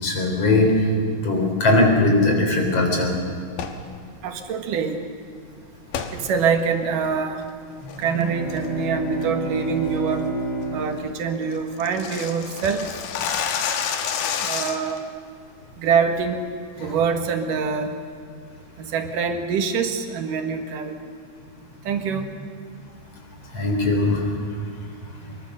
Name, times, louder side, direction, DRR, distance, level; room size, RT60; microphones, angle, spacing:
voice 1, 0.0-0.9 1.2-3.2 16.9-17.0 23.5-24.3, left 2 dB, 45° left, 2 dB, 4.3 m, -19 dB
sound 1, 3.5-3.8 5.9-6.1 6.6-6.7 7.3-7.5 7.9-8.2 8.6-8.9 9.2-9.3 9.7-9.9 10.3-10.4 10.7-10.8 11.0-11.1 11.4-15.0, left 7 dB, 70° left, 2.9 m, -28 dB
voice 2, 4.2-5.0 6.1-7.4 8.0-10.3 10.7-12.9 14.4-15.0 15.8-16.4 16.8-17.9 18.8-21.0 21.9-22.3, right 6 dB, 65° right, 5 dB, 2.9 m, -24 dB
Bowed string instrument, 8.0-12.5, right 2 dB, 15° right, 6.1 m, -31 dB
25.0 x 21.5 x 6.5 m, 2.1 s
omnidirectional pair, 4.2 m